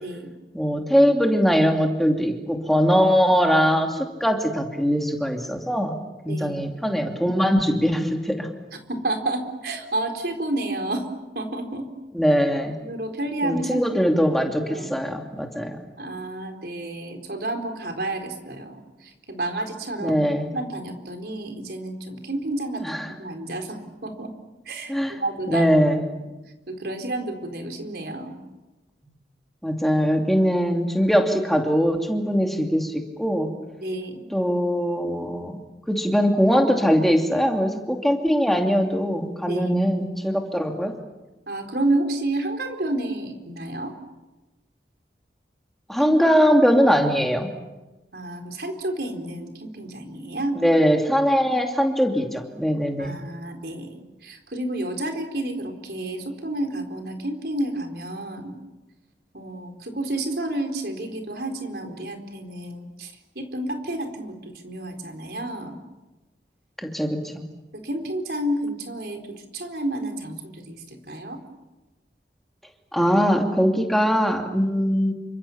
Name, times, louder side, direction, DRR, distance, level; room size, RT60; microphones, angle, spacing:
voice 1, 0.0-0.3 6.2-6.8 8.9-11.1 11.3-11.9 12.8-14.2 14.6-14.9 16.0-20.2 20.5-22.8 23.2-24.3 24.7-25.7 26.0-26.1 26.7-28.4 33.8-34.3 39.5-39.8 41.5-43.9 46.0-46.1 48.1-50.6 53.0-58.6 59.3-65.8 67.7-71.4, right 1 dB, 65° right, 4 dB, 4.2 m, -30 dB
voice 2, 0.5-5.9 6.2-8.5 12.1-12.7 13.4-15.8 20.0-20.5 22.8-23.1 24.9-25.2 25.5-26.0 29.6-33.5 34.3-35.6 35.9-40.9 45.9-47.5 50.5-53.1 66.8-67.3 72.9-75.1, equal, ahead, 2 dB, 2.7 m, -21 dB
29.0 x 26.0 x 7.2 m, 1.1 s
head